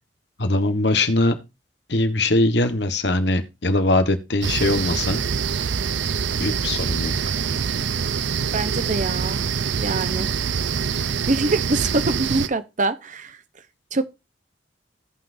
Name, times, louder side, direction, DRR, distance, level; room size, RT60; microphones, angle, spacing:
voice 1, 0.4-1.3 1.9-5.2 6.4-7.2, left 2 dB, 65° left, 1.4 m, -21 dB
sound 1, 4.4-12.5, right 6 dB, 80° right, 0.6 m, -25 dB
voice 2, 8.5-9.4 9.8-10.3 11.3-13.4 13.9-14.0, right 2 dB, 45° right, 0.9 m, -24 dB
16.5 x 5.8 x 2.6 m
head